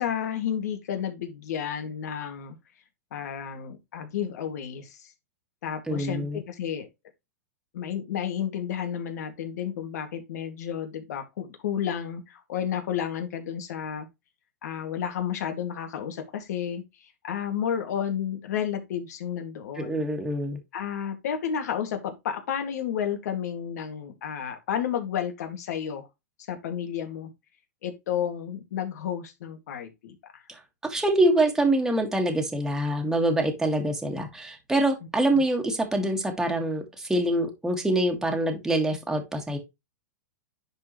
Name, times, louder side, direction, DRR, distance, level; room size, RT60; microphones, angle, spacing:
voice 1, 0.0-2.6 3.1-5.1 5.6-6.9 7.7-14.1 14.6-20.0 20.7-26.1 26.5-27.3 27.8-30.4 35.3-35.4, left 8 dB, 70° left, 2.1 m, -31 dB
voice 2, 5.9-6.4 19.8-20.6 30.5-39.6, right 1 dB, 5° right, 1.8 m, -25 dB
10.5 x 4.4 x 3.1 m
hypercardioid pair, 135°, 9 cm